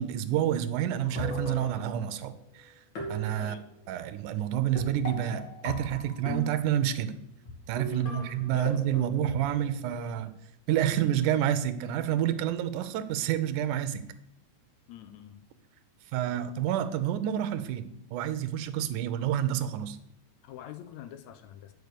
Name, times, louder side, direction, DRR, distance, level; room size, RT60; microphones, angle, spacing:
voice 1, 0.0-2.7 3.1-3.6 3.9-7.1 7.7-10.3 10.7-14.0 16.1-20.0, right 10 dB, 85° right, 2.2 m, -29 dB
sound 1, 1.0-2.4 2.9-3.9 4.8-6.9 7.4-7.5 7.8-10.1, left 1 dB, 40° left, 2.9 m, -39 dB
voice 2, 7.9-8.3 8.5-9.1 14.9-15.4 20.4-21.7, left 11 dB, 80° left, 1.8 m, -45 dB
9.5 x 4.7 x 6.7 m
omnidirectional pair, 3.5 m